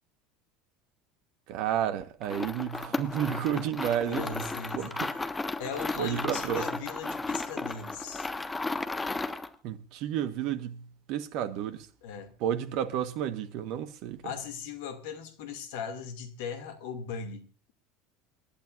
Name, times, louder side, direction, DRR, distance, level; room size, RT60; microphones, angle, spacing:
voice 1, 1.5-4.3 4.7-5.1 6.0-6.7 9.6-11.9 12.4-14.2, right 10 dB, 55° right, 1.2 m, -31 dB
sound 1, 2.2-9.5, left 3 dB, 15° left, 1.4 m, -34 dB
voice 2, 4.1-5.0 5.6-8.3 12.0-12.3 14.2-17.7, left 6 dB, 65° left, 2.3 m, -39 dB
28.0 x 12.0 x 2.5 m
figure-of-eight pair, 70°, 0 cm